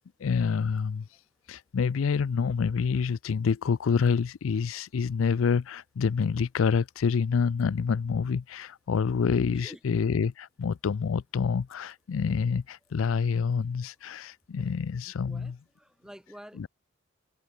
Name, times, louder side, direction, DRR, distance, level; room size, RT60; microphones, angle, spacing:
voice 1, 0.2-1.1 1.5-15.6 16.6-16.7, left 6 dB, 85° left, 0.4 m, -27 dB
voice 2, 9.5-10.0 13.3-13.4 14.6-14.7 15.3-16.7, equal, 5° right, 4.1 m, -49 dB
head